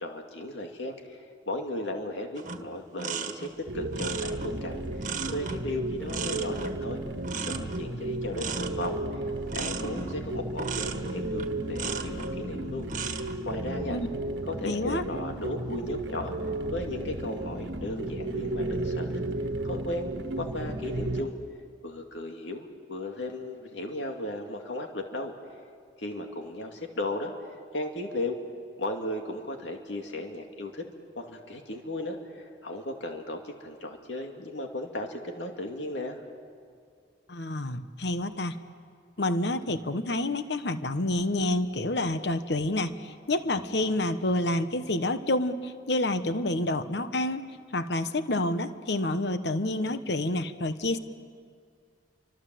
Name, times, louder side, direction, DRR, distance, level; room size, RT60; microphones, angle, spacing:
voice 1, 0.0-7.0 7.4-9.2 9.5-14.0 14.4-16.4 16.7-19.2 19.6-20.1 20.4-21.4 21.8-25.3 26.0-28.4 28.8-30.9 31.2-36.2, left 1 dB, 85° left, 3 dB, 2.3 m, -36 dB
sound 1, 2.4-12.4 12.8-13.3, right 5 dB, 45° right, 1.5 m, -37 dB
sound 2, 3.7-21.2, right 1 dB, 75° right, 1.4 m, -34 dB
voice 2, 14.7-15.0 37.3-38.6 39.2-51.0, left 1 dB, 65° left, 10 dB, 1.2 m, -28 dB
30.0 x 25.5 x 7.7 m, 2.2 s
head